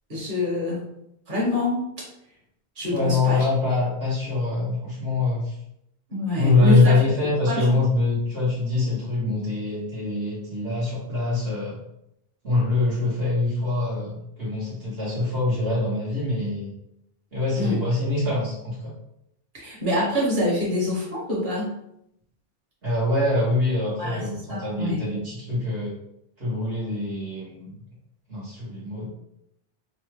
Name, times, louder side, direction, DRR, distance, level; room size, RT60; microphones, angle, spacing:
voice 1, 0.1-0.8 1.3-1.8 2.8-3.4 6.1-6.9 7.5-7.8 17.5-17.8 19.5-21.7 24.0-24.2 24.5-25.0, left 1 dB, 55° right, -5 dB, 1.5 m, -25 dB
voice 2, 2.9-5.5 6.4-11.8 12.4-16.7 17.3-18.9 22.8-25.9 26.4-27.7 28.3-29.1, left 2 dB, 70° right, -8 dB, 1.4 m, -24 dB
5.4 x 2.2 x 3.2 m, 0.79 s
omnidirectional pair, 1.0 m